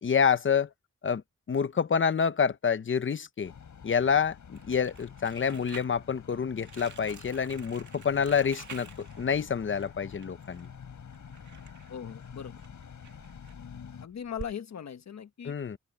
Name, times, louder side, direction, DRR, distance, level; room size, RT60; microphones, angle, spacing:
voice 1, 0.0-0.7 1.0-1.2 1.5-3.5 3.8-10.7 15.4-15.8, left 6 dB, 45° left, 0.8 m, -27 dB
sound 1, 3.4-14.1, left 7 dB, 85° left, 6.2 m, -48 dB
Crumpling crinkling, 4.5-14.5, right 7 dB, 80° right, 2.0 m, -50 dB
voice 2, 11.9-12.6 14.0-15.5, left 8 dB, 65° left, 1.3 m, -39 dB
open air
wide cardioid pair, 165°, 29 cm